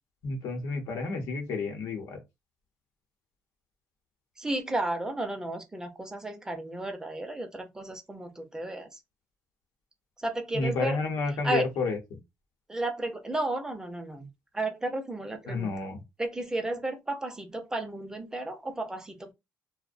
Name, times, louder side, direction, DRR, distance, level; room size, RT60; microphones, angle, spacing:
voice 1, 0.2-2.2 10.5-12.0 15.5-16.0, left 3 dB, 85° left, 0.7 m, -30 dB
voice 2, 4.4-9.0 10.2-11.0 11.4-11.6 12.7-14.3 14.5-15.7 16.2-19.3, right 2 dB, 10° right, 0.4 m, -33 dB
2.5 x 2.0 x 2.4 m
cardioid pair, 140°, 6 cm